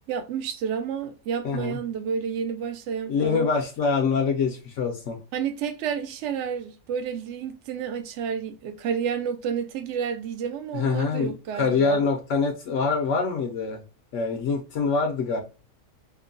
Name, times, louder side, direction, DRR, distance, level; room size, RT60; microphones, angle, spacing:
voice 1, 0.1-3.5 5.3-12.0, right 7 dB, 65° right, 0.7 m, -30 dB
voice 2, 1.4-1.8 3.1-5.2 10.7-13.8 14.1-15.4, left 5 dB, 65° left, 0.8 m, -25 dB
2.9 x 2.1 x 2.4 m
omnidirectional pair, 1.6 m